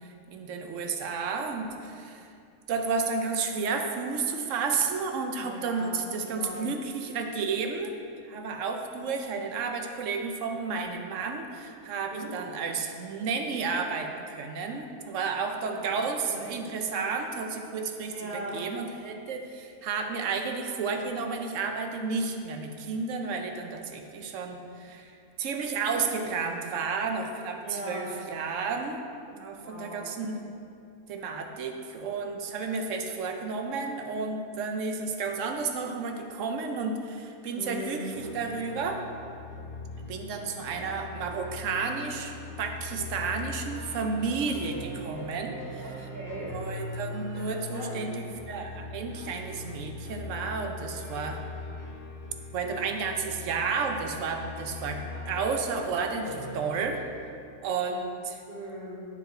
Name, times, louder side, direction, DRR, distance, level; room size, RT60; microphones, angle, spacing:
voice 1, 0.3-2.2 2.7-8.0 8.2-25.1 25.4-29.0 29.3-30.4 31.1-39.0 40.1-45.9 46.3-51.4 52.5-57.0 57.6-58.4, right 4 dB, 65° right, 4 dB, 0.9 m, -32 dB
voice 2, 5.4-6.7 12.1-12.3 15.4-16.6 18.1-18.7 27.6-28.1 29.6-30.1 37.5-38.2 45.8-46.6 47.5-48.1 58.5-59.1, right 1 dB, 40° right, -5 dB, 1.7 m, -40 dB
sound 1, 38.1-57.0, left 2 dB, 90° left, 1.7 m, -40 dB
9.6 x 4.8 x 3.8 m, 2.5 s
omnidirectional pair, 1.7 m